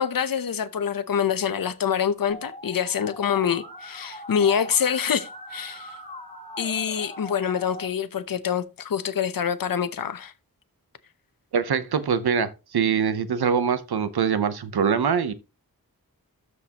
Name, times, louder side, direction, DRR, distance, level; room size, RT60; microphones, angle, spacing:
voice 1, 0.0-5.9 6.6-10.3, left 8 dB, 65° left, 0.8 m, -26 dB
Musical instrument, 2.3-7.9, equal, 15° left, 3.1 m, -41 dB
voice 2, 11.5-15.3, right 6 dB, 90° right, 0.8 m, -23 dB
13.0 x 4.7 x 2.9 m
wide cardioid pair, 105°, 37 cm